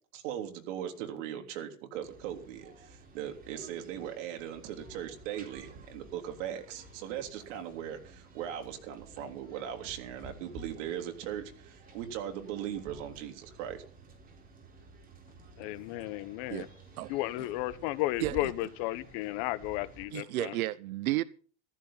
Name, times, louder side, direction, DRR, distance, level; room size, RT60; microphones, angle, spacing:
voice 1, 0.1-13.8, right 10 dB, 60° right, 3.4 m, -39 dB
sound 1, 2.0-20.0, right 2 dB, 20° right, 4.0 m, -52 dB
voice 2, 15.6-16.7 17.1-20.6, left 18 dB, 45° left, 1.1 m, -34 dB
voice 3, 20.1-21.2, right 17 dB, 85° right, 0.9 m, -32 dB
14.5 x 14.0 x 5.7 m
supercardioid pair, 155°, 42 cm